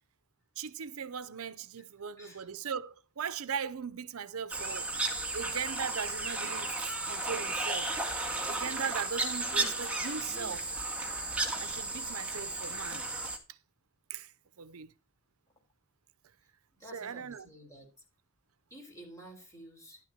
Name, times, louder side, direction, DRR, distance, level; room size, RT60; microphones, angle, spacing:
voice 1, 0.6-4.9 5.3-7.9 8.5-10.7 11.6-13.1 14.1-14.3 14.6-14.9 16.8-17.5, right 7 dB, 80° right, 0.7 m, -39 dB
voice 2, 2.2-2.5 16.8-17.9 18.7-20.0, right 1 dB, 15° left, 4.4 m, -51 dB
sound 1, 4.5-13.4, right 2 dB, 5° right, 1.8 m, -34 dB
12.0 x 11.5 x 2.9 m
head